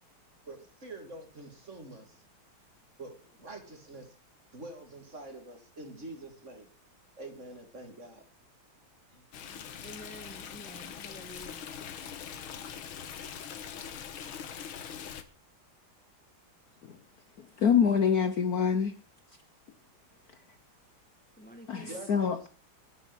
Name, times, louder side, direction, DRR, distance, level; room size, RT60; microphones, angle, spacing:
voice 1, 0.4-2.2 3.0-4.2 4.5-6.7 7.2-8.2 9.1-9.2 21.8-22.5, right 2 dB, 35° right, 6 dB, 2.8 m, -46 dB
Stream, 9.3-15.2, left 8 dB, 75° left, 2.1 m, -42 dB
voice 2, 9.8-11.7 21.4-22.0, equal, 5° left, 6 dB, 1.2 m, -49 dB
voice 3, 17.4-18.9 21.7-22.5, left 7 dB, 55° left, 10 dB, 1.2 m, -26 dB
13.0 x 8.1 x 7.9 m, 0.39 s
omnidirectional pair, 2.3 m